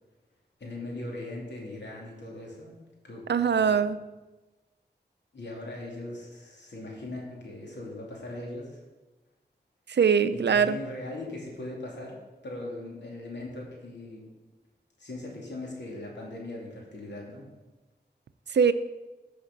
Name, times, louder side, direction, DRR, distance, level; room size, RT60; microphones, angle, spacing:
voice 1, 0.6-2.7 3.0-3.2 3.6-3.8 5.3-8.8 10.5-14.2 15.0-17.5, left 2 dB, 90° left, -2 dB, 2.8 m, -39 dB
voice 2, 3.3-4.0 9.9-10.8 18.5-18.7, right 6 dB, 80° right, 13 dB, 0.5 m, -22 dB
14.5 x 5.1 x 5.3 m, 1.1 s
wide cardioid pair, 60°, 18 cm